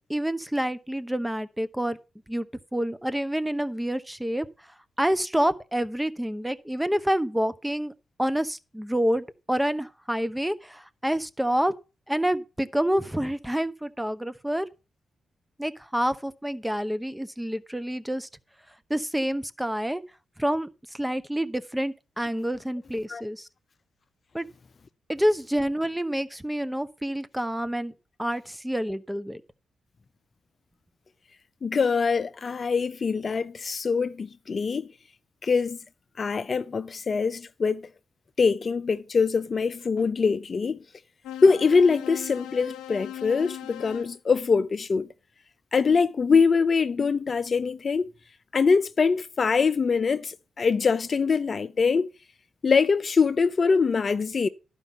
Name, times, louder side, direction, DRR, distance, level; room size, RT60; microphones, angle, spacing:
voice 1, 0.0-2.0 2.3-2.5 2.7-4.5 5.0-7.9 8.2-11.7 12.1-14.7 15.6-18.3 18.9-20.0 20.4-23.5 24.3-24.5 25.1-27.9 28.2-29.4, equal, 5° right, 0.9 m, -28 dB
voice 2, 31.6-34.9 35.4-35.8 36.2-37.9 38.4-40.8 41.4-45.1 45.7-48.1 48.5-52.1 52.6-54.5, left 5 dB, 50° left, 0.5 m, -23 dB
sound 1, 41.2-44.2, left 11 dB, 85° left, 0.7 m, -38 dB
11.5 x 5.2 x 5.7 m
supercardioid pair, 45°, 0 cm